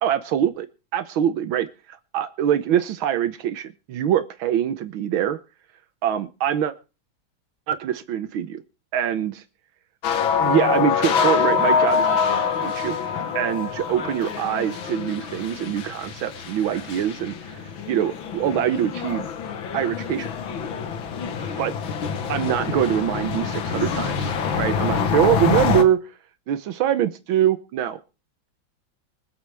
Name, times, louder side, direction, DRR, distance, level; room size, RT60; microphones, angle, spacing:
voice 1, 0.0-0.7 0.9-5.4 6.0-6.7 7.7-8.6 8.9-9.4 10.4-12.1 12.6-13.0 13.3-19.2 19.7-20.3 21.6-21.7 22.3-26.0 26.5-28.0, right 10 dB, 85° right, 10 dB, 1.7 m, -24 dB
sound 1, 10.0-25.8, left 6 dB, 75° left, 2.0 m, -25 dB
24.5 x 8.3 x 3.4 m, 0.32 s
omnidirectional pair, 2.2 m